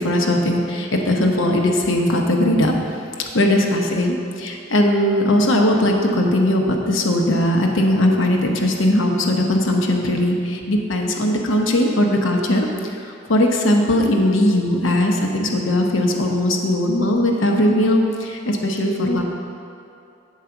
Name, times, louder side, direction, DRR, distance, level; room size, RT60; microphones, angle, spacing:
voice 1, 0.0-2.7 3.3-19.2, left 1 dB, 75° left, 1 dB, 0.9 m, -19 dB
9.1 x 4.8 x 6.9 m, 2.5 s
head